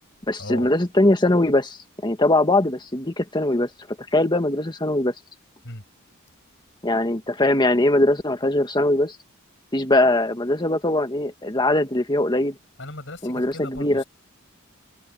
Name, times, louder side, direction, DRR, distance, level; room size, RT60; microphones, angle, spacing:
voice 1, 0.3-1.8 2.0-3.7 4.1-5.1 6.8-9.2 9.7-12.6 13.2-14.0, left 1 dB, 20° left, 1.9 m, -21 dB
voice 2, 12.8-14.0, left 2 dB, 60° left, 6.5 m, -37 dB
head